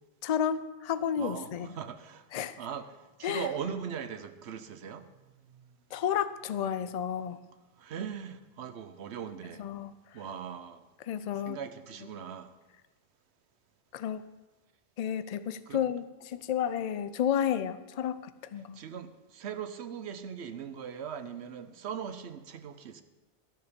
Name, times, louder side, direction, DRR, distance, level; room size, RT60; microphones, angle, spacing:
voice 1, 0.2-1.7 2.3-2.6 3.2-3.5 5.9-7.4 9.6-9.9 11.1-11.6 13.9-14.2 15.0-18.2 18.5-18.8, left 9 dB, 50° left, 13 dB, 0.5 m, -31 dB
voice 2, 1.2-2.3 2.6-5.1 7.8-9.6 10.1-10.8 11.4-12.5 15.7-15.8 18.7-23.0, right 7 dB, 90° right, 11 dB, 1.0 m, -40 dB
13.5 x 6.9 x 5.2 m, 1.1 s
omnidirectional pair, 1.1 m